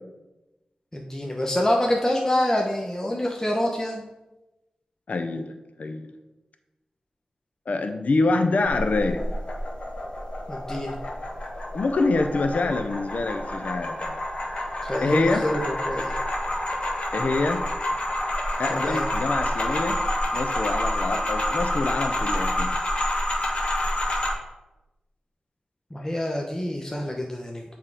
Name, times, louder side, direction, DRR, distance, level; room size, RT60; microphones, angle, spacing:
voice 1, 0.9-4.0 10.5-11.0 14.8-15.6 15.9-16.2 18.7-19.0 25.9-27.6, left 1 dB, 20° left, 0 dB, 0.9 m, -26 dB
voice 2, 5.1-6.1 7.7-9.2 11.7-14.2 15.0-15.5 17.1-17.6 18.6-20.0 20.3-22.7, left 3 dB, 70° left, 7 dB, 0.5 m, -25 dB
sound 1, 8.7-24.3, left 1 dB, 45° left, 1.5 m, -28 dB
7.4 x 3.6 x 4.7 m, 1.0 s
cardioid pair, 55°, 3 cm